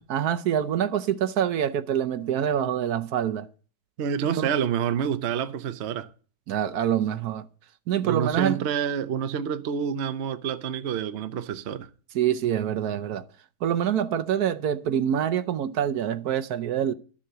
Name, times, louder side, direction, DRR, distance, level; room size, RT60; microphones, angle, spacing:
voice 1, 0.0-3.5 4.2-4.5 6.5-7.4 7.9-8.6 12.1-13.2 13.6-16.9, right 9 dB, 70° right, 1.2 m, -26 dB
voice 2, 4.0-6.1 8.0-11.9, right 8 dB, 50° right, 0.8 m, -28 dB
12.0 x 7.3 x 6.7 m
omnidirectional pair, 1.8 m